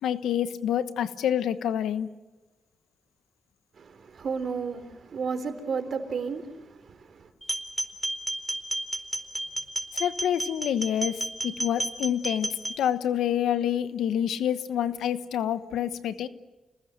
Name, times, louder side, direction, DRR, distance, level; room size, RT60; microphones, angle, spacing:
voice 1, 0.0-2.1 9.9-16.3, left 10 dB, 85° left, 1.1 m, -27 dB
voice 2, 3.7-7.3, right 5 dB, 65° right, 3.7 m, -33 dB
sound 1, 7.4-12.8, right 1 dB, 10° right, 4.5 m, -32 dB
29.0 x 20.0 x 7.7 m
supercardioid pair, 50°, 0 cm